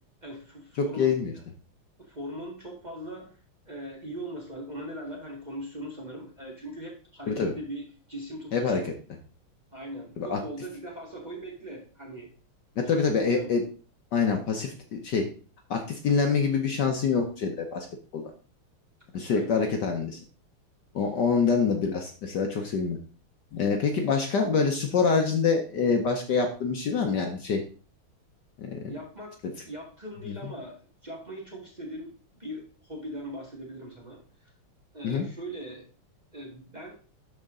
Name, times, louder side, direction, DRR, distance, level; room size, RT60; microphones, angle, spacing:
voice 1, 0.2-1.2 2.0-3.4 3.7-8.9 9.7-12.3 13.2-13.5 19.3-19.9 28.9-34.5 34.9-35.9 36.3-36.9, right 1 dB, 20° right, -1 dB, 1.7 m, -40 dB
voice 2, 0.8-1.3 7.3-7.5 8.5-8.9 10.2-10.4 12.8-13.6 14.1-15.3 15.7-17.9 18.1-18.3 19.1-20.2 20.9-23.0 23.5-27.6 28.6-28.9 30.3-30.5 35.0-35.2, left 5 dB, 60° left, 4 dB, 1.4 m, -26 dB
12.0 x 4.4 x 3.7 m, 0.39 s
omnidirectional pair, 2.4 m